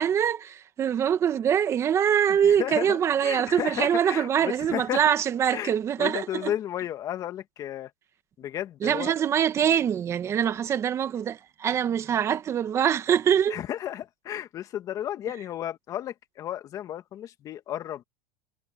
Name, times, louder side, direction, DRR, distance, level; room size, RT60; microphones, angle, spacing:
voice 1, 0.0-6.5 8.8-13.6, right 9 dB, 30° right, 2.0 m, -24 dB
voice 2, 2.3-5.0 5.5-7.9 8.4-9.2 13.5-18.0, left 11 dB, 40° left, 2.0 m, -33 dB
supercardioid pair, 125°, 9 cm